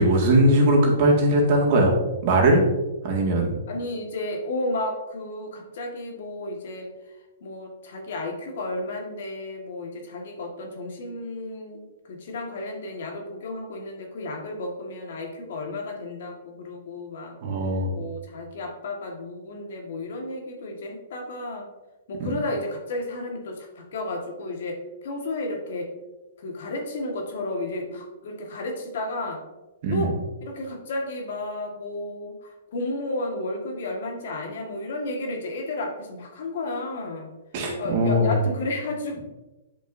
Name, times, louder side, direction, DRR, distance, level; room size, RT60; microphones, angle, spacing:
voice 1, 0.0-1.9 2.2-2.6 3.0-3.6 17.4-17.9 29.8-30.1 37.5-38.3, right 1 dB, 45° right, -1 dB, 2.0 m, -20 dB
voice 2, 3.7-11.8 12.1-17.4 17.9-21.7 22.1-25.9 26.4-29.4 29.9-37.3 37.8-39.2, left 2 dB, 65° left, 1 dB, 1.6 m, -32 dB
8.4 x 5.5 x 2.7 m, 1.1 s
hypercardioid pair, 130°, 0 cm